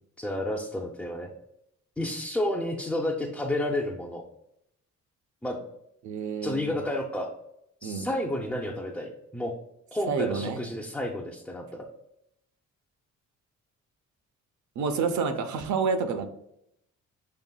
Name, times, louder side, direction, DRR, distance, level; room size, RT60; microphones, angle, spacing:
voice 1, 0.2-1.3 2.0-4.2 5.4-5.6 6.4-7.3 7.8-9.5 9.9-11.8, left 1 dB, 5° left, -1 dB, 0.4 m, -31 dB
voice 2, 6.0-6.8 7.8-8.1 10.1-10.6 14.8-16.3, right 5 dB, 70° right, 7 dB, 0.6 m, -29 dB
5.6 x 3.0 x 2.2 m, 0.78 s
cardioid pair, 90°, 30 cm